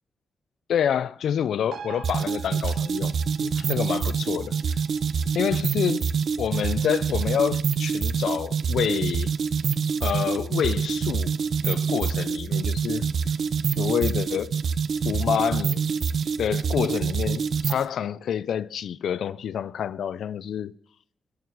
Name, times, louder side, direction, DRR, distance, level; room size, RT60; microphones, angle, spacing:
voice 1, 0.7-3.1 3.4-4.8 5.4-6.1 6.4-9.3 10.0-11.4 11.6-13.1 13.8-14.6 15.0-15.8 16.4-20.7, left 9 dB, 85° left, 0.3 m, -27 dB
sound 1, 1.7-8.7 9.0-9.1, right 7 dB, 90° right, 0.9 m, -47 dB
sound 2, 2.0-17.9, right 6 dB, 60° right, 0.5 m, -26 dB
13.5 x 4.8 x 7.0 m
wide cardioid pair, 130°, 0 cm